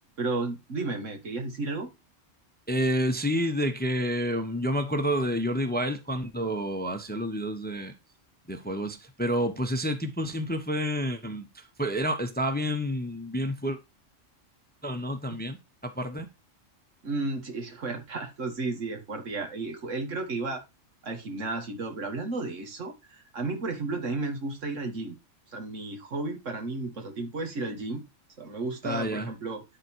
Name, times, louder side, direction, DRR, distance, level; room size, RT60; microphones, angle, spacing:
voice 1, 0.2-1.9 17.0-20.6 21.0-25.2 25.5-28.0 28.4-29.6, right 3 dB, 75° right, 1.9 m, -33 dB
voice 2, 2.7-7.9 8.5-13.8 14.8-15.6 15.8-16.3 28.8-29.3, equal, 10° left, 0.8 m, -29 dB
11.0 x 3.9 x 4.5 m
omnidirectional pair, 1.3 m